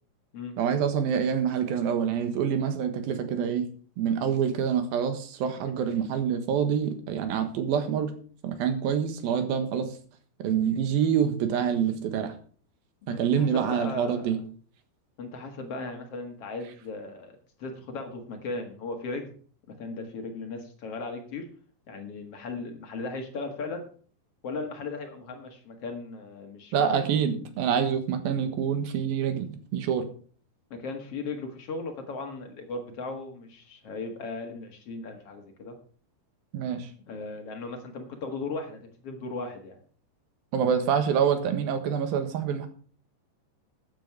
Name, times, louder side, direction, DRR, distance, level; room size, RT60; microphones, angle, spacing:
voice 1, 0.6-3.7 4.0-8.1 8.4-10.0 10.4-12.3 13.1-14.4 26.7-30.1 36.5-36.9 40.5-42.7, right 8 dB, 70° right, 8 dB, 3.0 m, -26 dB
voice 2, 13.1-14.3 15.2-19.3 19.7-21.5 21.9-23.9 24.4-27.0 30.7-35.8 37.1-39.8, left 3 dB, 50° left, 4 dB, 1.8 m, -37 dB
13.5 x 9.2 x 4.8 m, 0.44 s
omnidirectional pair, 4.9 m